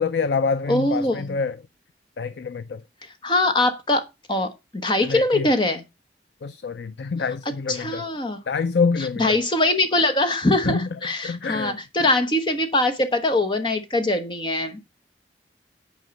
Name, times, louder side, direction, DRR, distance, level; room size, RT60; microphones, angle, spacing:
voice 1, 0.0-1.7 2.2-2.8 5.0-5.5 6.4-8.1 8.5-9.4 10.5-12.1, left 5 dB, 75° left, 0.5 m, -26 dB
voice 2, 0.7-1.2 3.2-4.0 4.3-4.5 4.8-5.8 7.8-8.4 9.2-14.8, left 2 dB, 25° left, 1.1 m, -22 dB
9.6 x 4.7 x 5.2 m
head